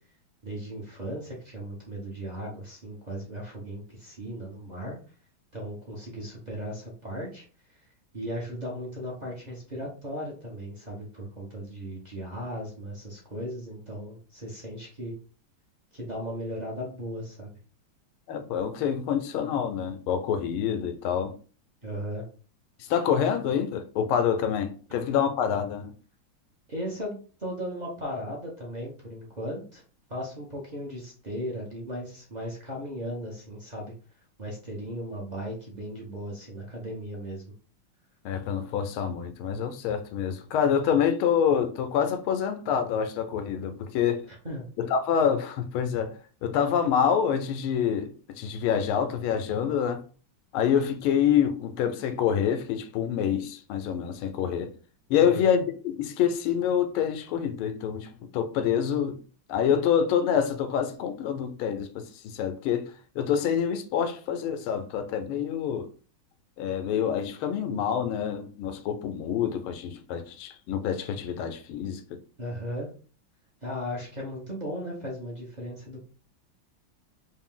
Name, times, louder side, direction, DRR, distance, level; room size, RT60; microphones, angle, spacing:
voice 1, 0.4-5.0 5.5-7.4 7.7-7.8 8.1-15.2 15.9-17.6 21.8-22.2 24.9-25.0 26.7-29.8 30.1-33.9 34.4-37.5 44.3-44.7 55.2-55.4 72.4-72.9 73.6-76.0, equal, 35° right, 0.6 m, -36 dB
voice 2, 18.3-21.4 22.8-25.9 38.2-44.2 44.8-46.1 46.4-50.0 50.5-54.7 55.1-59.2 59.5-65.9 66.6-72.2, left 8 dB, 85° left, 1.5 m, -27 dB
3.7 x 2.6 x 3.7 m
omnidirectional pair, 2.3 m